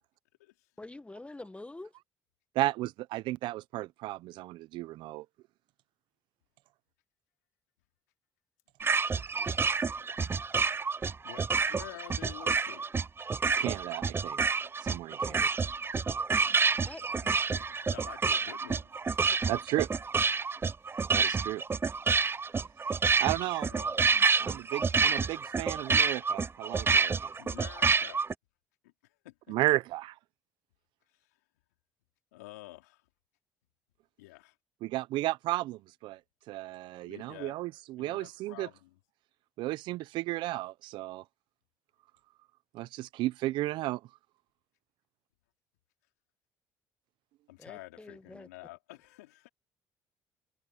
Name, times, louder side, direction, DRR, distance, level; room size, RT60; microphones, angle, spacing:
voice 1, 0.8-1.9 15.3-15.4 16.9-17.0 47.6-48.5, left 2 dB, 15° left, 1.5 m, -46 dB
voice 2, 2.5-5.3 13.6-14.5 14.8-15.5 19.5-19.9 21.1-21.6 23.2-23.7 24.4-27.3 29.5-30.2 34.8-36.2 36.5-38.7 39.6-41.2 42.7-44.0, right 17 dB, 70° right, 1.0 m, -33 dB
sound 1, 8.8-28.3, right 4 dB, 30° right, 0.7 m, -28 dB
voice 3, 9.3-9.6 11.2-12.9 16.8-19.6 20.9-21.1 23.7-24.1 27.4-28.2 28.8-29.6 31.2-31.4 32.3-33.1 34.2-34.6 37.0-37.6 38.0-39.0 47.5-49.5, left 19 dB, 85° left, 3.7 m, -50 dB
open air
hypercardioid pair, 55°, 8 cm